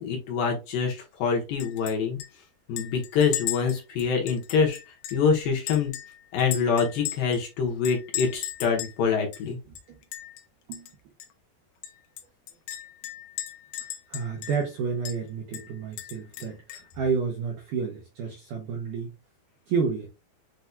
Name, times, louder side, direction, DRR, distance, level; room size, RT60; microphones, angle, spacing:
voice 1, 0.0-2.2 2.7-4.8 5.1-5.9 6.3-9.6, left 6 dB, 70° left, 1 dB, 2.5 m, -25 dB
Chink clink, 1.6-1.9 2.2-2.3 2.8-5.3 5.7-7.4 7.8-9.0 9.3-9.4 9.8-10.4 10.7-10.9 11.2-11.3 11.8-14.7 15.1-15.2 15.5-16.9, left 12 dB, 85° left, 1.9 m, -37 dB
voice 2, 9.7-10.0 10.7-10.9 14.1-19.1 19.7-20.1, right 5 dB, 80° right, 1 dB, 1.9 m, -30 dB
7.9 x 2.9 x 2.3 m, 0.27 s
omnidirectional pair, 4.8 m